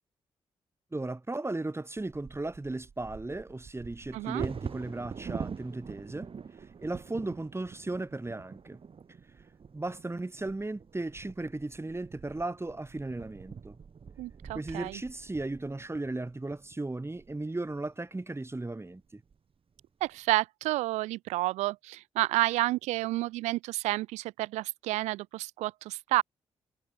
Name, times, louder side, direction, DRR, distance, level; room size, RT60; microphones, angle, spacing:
voice 1, 0.9-6.3 6.6-8.8 9.7-13.8 14.5-19.2, right 2 dB, 20° right, 5.8 m, -36 dB
Bird vocalization bird call bird song / Wind / Thunder, 2.0-17.9 18.5-18.6 18.9-19.3 19.8-20.3, right 6 dB, 55° right, 3.9 m, -45 dB
voice 2, 4.1-4.4 14.2-15.0 20.0-26.2, right 18 dB, 90° right, 0.9 m, -30 dB
supercardioid pair, 45°, 11 cm